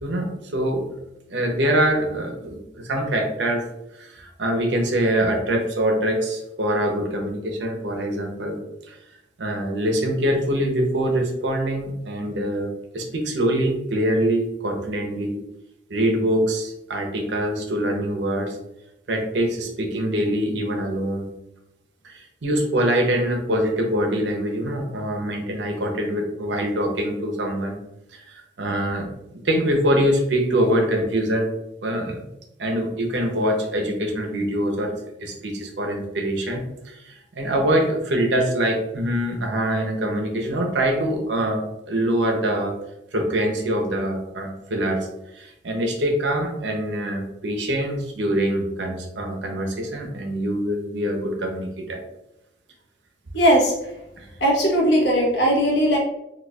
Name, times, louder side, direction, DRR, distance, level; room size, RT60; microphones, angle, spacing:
voice 1, 0.0-0.8 1.3-3.7 4.0-8.6 8.9-9.0 9.4-15.4 15.9-18.6 19.1-21.3 22.0-27.8 28.1-29.1 29.4-31.5 31.8-32.2 32.6-34.9 35.2-42.7 43.1-45.1 45.3-52.0 54.2-54.3, right 1 dB, 90° right, 2 dB, 0.7 m, -24 dB
voice 2, 53.3-53.7 54.4-56.0, equal, 80° left, -3 dB, 1.1 m, -18 dB
4.1 x 2.9 x 2.3 m, 0.87 s
head